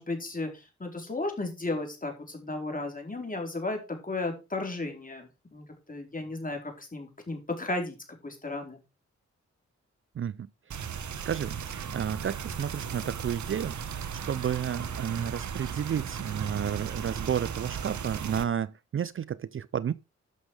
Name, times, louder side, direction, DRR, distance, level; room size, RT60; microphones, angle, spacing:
voice 1, 0.0-8.0 8.2-8.8, left 2 dB, 30° left, 4.6 m, -34 dB
sound 1, 10.7-18.4, right 7 dB, 75° right, 1.3 m, -36 dB
voice 2, 11.3-13.8 14.3-19.9, right 8 dB, 45° right, 0.5 m, -31 dB
11.5 x 6.4 x 4.9 m
cardioid pair, 55°, 29 cm